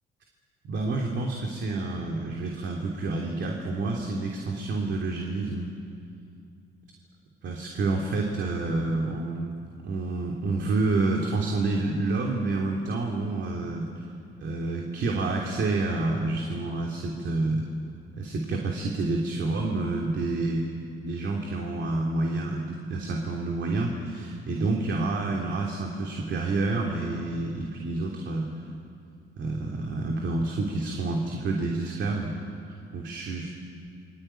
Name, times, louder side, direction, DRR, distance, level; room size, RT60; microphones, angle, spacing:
voice 1, 0.7-5.7 7.4-9.6 9.8-13.9 14.4-17.6 18.2-20.7 21.0-28.5 29.4-32.3 32.7-33.5, right 2 dB, 65° right, 0 dB, 3.3 m, -28 dB
27.0 x 23.0 x 9.1 m, 2.5 s
cardioid pair, 90°, 20 cm